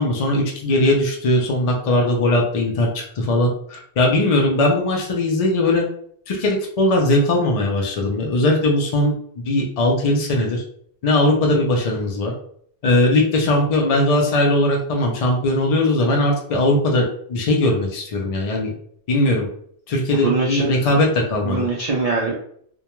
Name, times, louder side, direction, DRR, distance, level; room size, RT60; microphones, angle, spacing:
voice 1, 0.0-5.9 6.3-9.1 9.5-10.6 11.0-12.3 12.8-18.7 19.1-19.5 19.9-21.6, left 1 dB, 60° left, 0 dB, 0.4 m, -19 dB
voice 2, 20.1-20.7 21.4-22.3, right 3 dB, 55° right, -2 dB, 0.4 m, -22 dB
2.2 x 2.2 x 2.9 m, 0.64 s
omnidirectional pair, 1.1 m